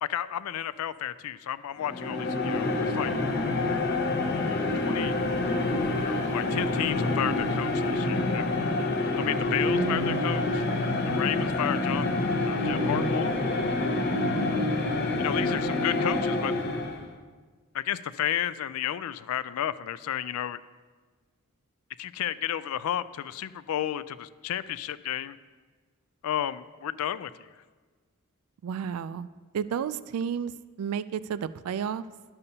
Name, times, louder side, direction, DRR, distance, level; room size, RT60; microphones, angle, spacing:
voice 1, 0.0-3.1 4.8-5.1 6.0-8.5 9.1-10.7 11.1-12.1 12.5-13.3 15.2-16.5 17.7-20.6 22.0-25.4 26.2-27.5, left 10 dB, 75° left, 16 dB, 0.3 m, -32 dB
sound 1, 1.8-17.1, left 2 dB, 45° left, 0.6 m, -27 dB
voice 2, 9.7-10.5 28.6-29.3 29.5-30.5 30.8-32.0, right 7 dB, 80° right, 15 dB, 0.3 m, -32 dB
11.5 x 6.8 x 2.8 m, 1.4 s
head